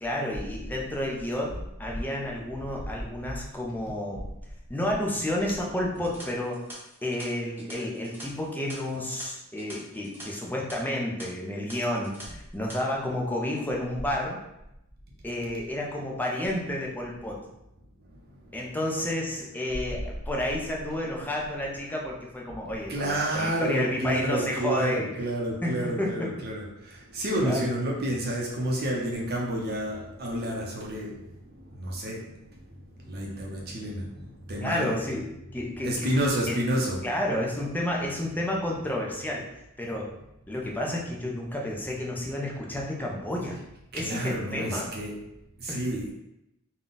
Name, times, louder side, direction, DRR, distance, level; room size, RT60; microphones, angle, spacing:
voice 1, 0.0-4.3 4.7-6.6 7.0-14.4 15.2-17.4 18.5-25.1 25.6-26.3 27.4-27.7 34.6-36.1 36.5-36.6 37.0-39.5 39.8-40.1 40.5-43.6 43.9-44.9 45.7-45.9, left 1 dB, 10° left, -2 dB, 0.5 m, -31 dB
sound 1, 5.9-10.2 10.5-10.7 11.2-11.3 11.7-12.2 12.5-12.8, right 1 dB, 10° right, 1.0 m, -45 dB
voice 2, 18.1-18.6 19.7-19.8 22.9-34.9 35.8-37.0 43.9-45.1 45.6-46.1, right 1 dB, 45° right, -2 dB, 0.7 m, -30 dB
3.7 x 2.3 x 3.9 m, 0.86 s
head